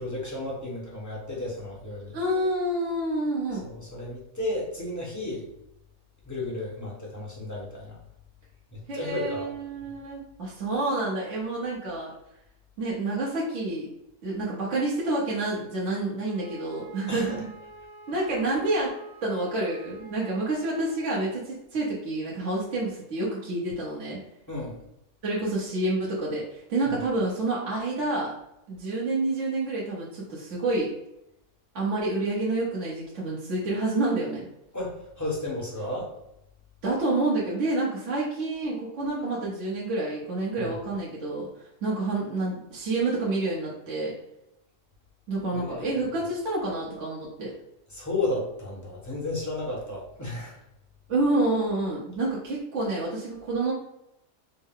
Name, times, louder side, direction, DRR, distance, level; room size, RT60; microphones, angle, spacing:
voice 1, 0.0-2.2 3.6-5.5 6.2-8.0 8.7-9.5 17.1-17.4 24.5-24.8 26.9-27.0 34.7-36.1 40.6-40.7 45.5-45.9 47.9-50.6, left 2 dB, 15° left, -5 dB, 0.9 m, -33 dB
voice 2, 2.1-3.7 8.9-12.1 12.8-13.9 14.2-17.5 18.1-19.0 19.2-24.2 25.2-28.3 28.7-30.9 31.7-34.5 36.8-41.5 41.8-44.1 45.3-47.5 51.1-53.7, right 2 dB, 55° right, -6 dB, 1.2 m, -28 dB
Wind instrument woodwind instrument, 16.2-21.1, right 2 dB, 75° right, 1.2 m, -47 dB
4.5 x 2.1 x 3.6 m, 0.83 s
omnidirectional pair, 1.7 m